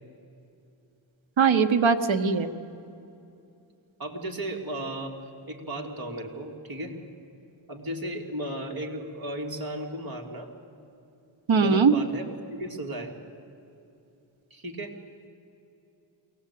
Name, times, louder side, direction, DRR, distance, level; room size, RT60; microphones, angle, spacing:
voice 1, 1.4-2.5 11.5-11.9, right 5 dB, 75° right, 9 dB, 1.2 m, -20 dB
voice 2, 4.0-5.2 5.5-7.0 7.7-10.5 11.5-13.1 14.5-15.0, right 1 dB, 50° right, 1 dB, 2.7 m, -35 dB
22.5 x 18.5 x 8.5 m, 2.7 s
wide cardioid pair, 110°, 47 cm